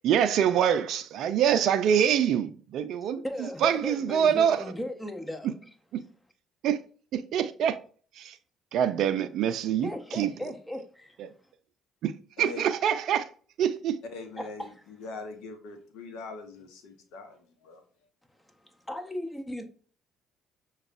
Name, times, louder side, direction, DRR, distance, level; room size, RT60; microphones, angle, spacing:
voice 1, 0.0-4.6 5.4-5.5 5.9-6.0 6.6-6.8 7.1-7.8 8.2-8.4 8.7-10.3 11.2-11.3 12.0-12.1 12.4-13.3 13.6-14.0, right 9 dB, 65° right, 0.4 m, -25 dB
voice 2, 3.2-5.5 9.8-11.2 14.4-14.7 18.9-19.6, left 1 dB, 10° left, 0.7 m, -36 dB
voice 3, 14.1-17.8, left 3 dB, 75° left, 0.8 m, -42 dB
6.2 x 2.3 x 2.5 m
hypercardioid pair, 55°, 0 cm